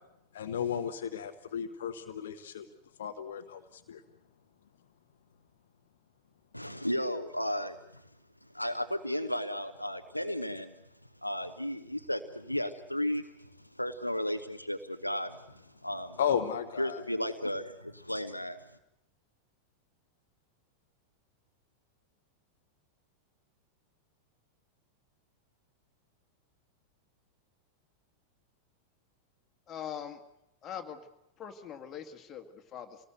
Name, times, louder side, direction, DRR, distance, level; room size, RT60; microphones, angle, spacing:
voice 1, 0.3-2.6 3.0-3.6 3.9-4.0 16.2-17.0, left 8 dB, 60° left, 7 dB, 1.2 m, -33 dB
voice 2, 6.5-8.0 8.5-10.7 11.2-16.2 16.8-18.6, left 1 dB, 90° left, 7 dB, 0.9 m, -34 dB
voice 3, 29.7-30.2 30.6-31.0 31.4-33.0, left 8 dB, 25° left, 4 dB, 2.1 m, -42 dB
26.5 x 18.5 x 8.0 m, 0.84 s
figure-of-eight pair, 90°, 0 cm